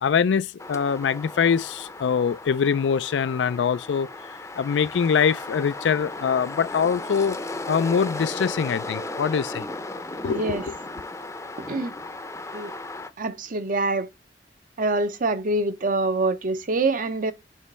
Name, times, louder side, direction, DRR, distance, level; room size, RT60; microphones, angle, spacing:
voice 1, 0.0-4.1 4.6-7.4 7.7-9.7 10.2-10.4, left 6 dB, 80° left, 0.4 m, -23 dB
sound 1, 0.6-13.1, left 2 dB, 15° left, 0.6 m, -35 dB
voice 2, 10.3-10.6 11.6-11.9 12.5-12.7 13.2-14.1 14.8-17.3, right 2 dB, 50° right, 0.7 m, -25 dB
6.4 x 3.1 x 5.4 m
head